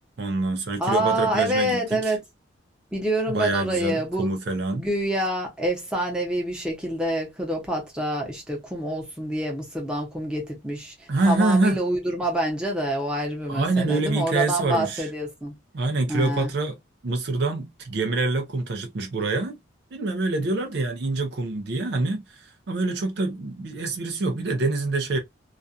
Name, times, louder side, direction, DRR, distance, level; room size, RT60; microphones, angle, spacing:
voice 1, 0.2-2.2 3.3-4.9 11.1-11.8 13.5-15.1 15.7-16.8 17.0-19.6 19.9-25.2, right 3 dB, 55° right, 0.5 m, -25 dB
voice 2, 0.8-2.2 2.9-4.4 4.8-15.5 16.1-16.5, right 1 dB, 5° right, 0.8 m, -27 dB
2.4 x 2.2 x 2.5 m
head